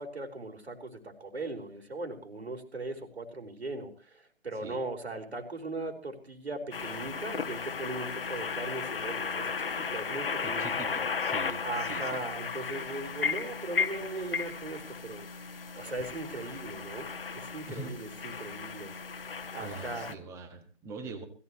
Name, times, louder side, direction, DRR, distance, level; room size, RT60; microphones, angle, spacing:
voice 1, 0.0-11.0 11.6-15.3 15.7-19.0 19.3-20.1, right 2 dB, 70° right, 4 dB, 4.6 m, -39 dB
voice 2, 4.5-4.8 10.4-12.2 17.7-18.0 18.2-18.5 19.6-21.2, right 4 dB, 10° right, 9 dB, 1.4 m, -43 dB
sound 1, 6.7-20.1, left 5 dB, 55° left, 1.3 m, -35 dB
21.5 x 15.5 x 3.1 m, 0.34 s
figure-of-eight pair, 140°, 33 cm